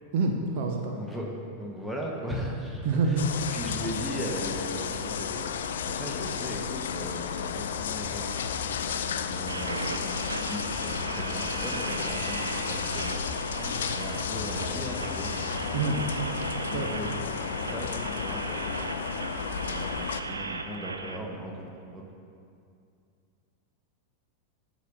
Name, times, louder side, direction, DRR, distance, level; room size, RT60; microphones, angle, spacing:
voice 1, 0.1-0.9 2.8-3.3 15.7-16.0 16.7-16.9, right 4 dB, 50° right, 2 dB, 0.8 m, -26 dB
voice 2, 0.9-1.3 1.6-5.5 5.8-8.7 9.3-10.1 10.4-15.3 15.7-16.0 16.7-17.2 17.5-18.7 19.6-22.0, equal, ahead, -2 dB, 1.2 m, -38 dB
sound 1, 3.2-20.2, left 7 dB, 60° left, 0.4 m, -33 dB
sound 2, 9.5-21.2, right 3 dB, 75° right, 0.4 m, -36 dB
9.7 x 4.1 x 6.1 m, 2.4 s
figure-of-eight pair, 90°, 0 cm